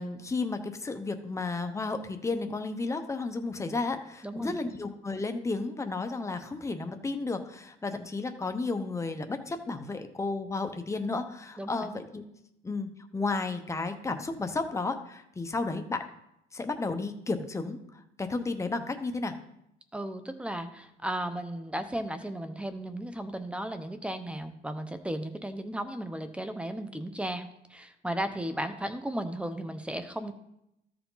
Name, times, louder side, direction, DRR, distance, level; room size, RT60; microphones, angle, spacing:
voice 1, 0.0-12.2 12.6-16.0 16.5-19.3, left 3 dB, 15° left, 7 dB, 0.9 m, -33 dB
voice 2, 4.2-4.6 11.6-11.9 19.9-27.4 27.7-30.3, right 1 dB, 5° right, 9 dB, 0.8 m, -35 dB
13.5 x 4.8 x 3.9 m, 0.81 s
cardioid pair, 110°, 17 cm